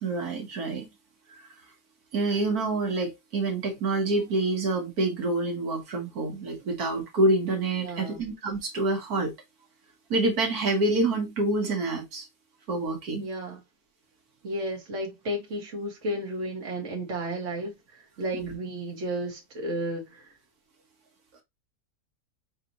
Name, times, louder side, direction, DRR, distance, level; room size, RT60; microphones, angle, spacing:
voice 1, 0.0-0.9 2.1-9.3 10.1-12.3 12.7-13.3 18.3-18.5, right 2 dB, 90° right, 1.9 m, -27 dB
voice 2, 7.8-8.2 13.2-13.6 14.4-20.3, right 1 dB, 55° right, 1.9 m, -33 dB
6.6 x 2.9 x 2.6 m
omnidirectional pair, 1.6 m